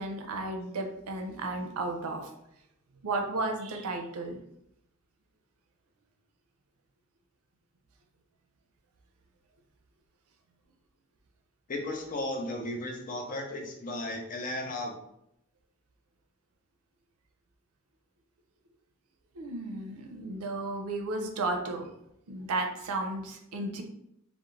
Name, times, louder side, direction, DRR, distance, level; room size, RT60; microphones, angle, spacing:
voice 1, 0.0-2.3 3.0-4.4 19.3-21.9 22.3-23.8, right 2 dB, 90° right, 3 dB, 0.5 m, -33 dB
voice 2, 11.7-14.9, left 1 dB, 40° left, 1 dB, 0.4 m, -35 dB
2.4 x 2.0 x 3.0 m, 0.79 s
head